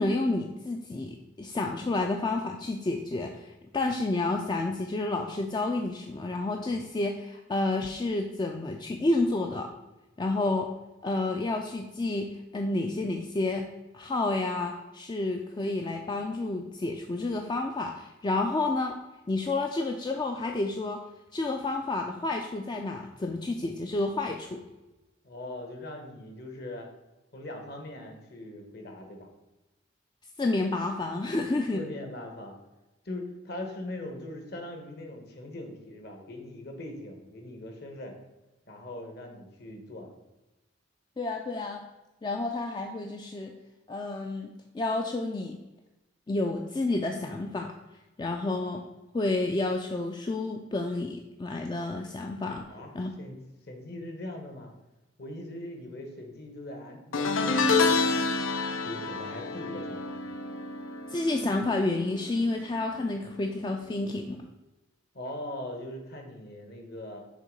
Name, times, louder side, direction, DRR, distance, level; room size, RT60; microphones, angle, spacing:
voice 1, 0.0-9.7 10.2-10.7 11.0-12.3 12.5-13.7 13.9-18.9 19.3-21.0 21.3-24.6 30.4-31.8 41.2-41.8 42.2-43.5 43.9-45.6 46.3-47.7 48.2-48.8 49.1-52.7 52.9-53.1 61.1-64.4, left 2 dB, 20° left, 2 dB, 0.3 m, -30 dB
voice 2, 25.2-26.9 27.3-29.3 31.7-32.5 33.0-38.2 38.7-40.1 52.7-52.9 53.2-53.4 53.7-54.7 55.2-58.5 58.8-60.2 65.1-67.2, left 1 dB, 50° left, 3 dB, 1.1 m, -41 dB
sound 1, 57.1-62.5 62.8-63.2 64.4-64.5, left 4 dB, 85° left, 0.6 m, -28 dB
6.5 x 3.1 x 5.2 m, 1.0 s
head